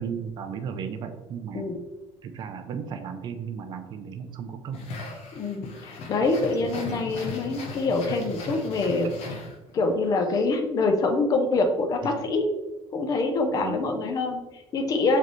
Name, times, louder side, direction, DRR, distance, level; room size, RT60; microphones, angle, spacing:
voice 1, 0.0-1.7 2.2-4.8 6.7-6.9 12.0-12.1 13.5-13.8, right 7 dB, 40° right, 7 dB, 0.5 m, -35 dB
sound 1, 4.7-9.9, left 2 dB, 65° left, 1.0 m, -38 dB
voice 2, 5.3-9.1 9.7-12.4 12.9-15.2, left 3 dB, 35° left, 5 dB, 0.6 m, -25 dB
4.8 x 3.4 x 3.1 m, 1.1 s
cardioid pair, 175°, 11 cm